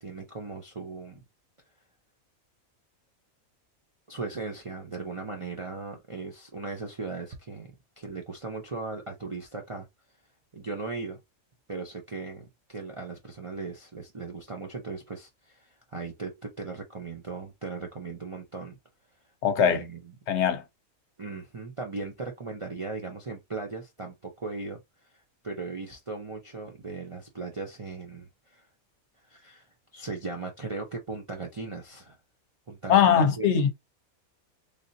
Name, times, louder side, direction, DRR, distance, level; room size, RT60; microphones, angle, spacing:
voice 1, 0.0-1.2 4.1-9.9 10.5-11.2 11.7-18.8 19.6-20.1 21.2-24.8 25.1-28.7 29.2-29.7 29.9-32.2 32.7-33.5, right 4 dB, 55° right, 0.3 m, -38 dB
voice 2, 19.4-19.8 20.3-20.6 32.9-33.7, left 8 dB, 60° left, 0.9 m, -21 dB
3.4 x 2.7 x 2.6 m
omnidirectional pair, 1.5 m